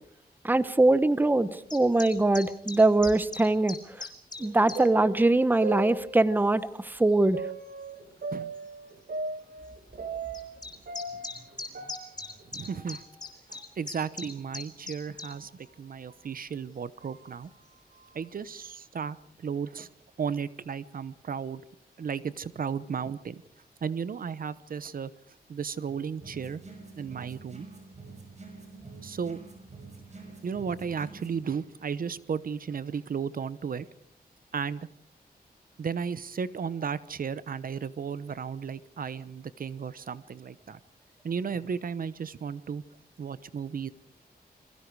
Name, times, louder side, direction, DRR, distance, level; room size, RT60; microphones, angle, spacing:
voice 1, 0.4-3.8 4.4-7.4, right 2 dB, 10° right, 14 dB, 0.9 m, -22 dB
sound 1, 1.7-4.8 5.5-5.7 6.6-6.7 7.8-7.9 8.2-8.3 8.6-8.7 10.3-15.3, left 3 dB, 25° left, 3.4 m, -39 dB
sound 2, 4.4-6.6 7.3-10.6 10.9-13.2 13.5-13.6 14.4-14.5 15.2-15.4 16.1-16.2 17.0-17.3, right 3 dB, 80° right, 3.5 m, -38 dB
voice 2, 12.5-13.0 13.5-17.5 18.1-19.2 19.4-19.9 20.2-21.6 22.0-23.4 23.8-25.1 25.5-26.6 27.0-27.7 29.0-29.4 30.4-33.9 34.5-34.9 35.8-40.8 41.2-42.8 43.2-43.9, right 6 dB, 60° right, 16 dB, 0.9 m, -34 dB
sound 3, 26.2-31.4, right 3 dB, 45° right, 6.0 m, -47 dB
29.5 x 22.0 x 4.8 m, 0.65 s
wide cardioid pair, 125°, 16 cm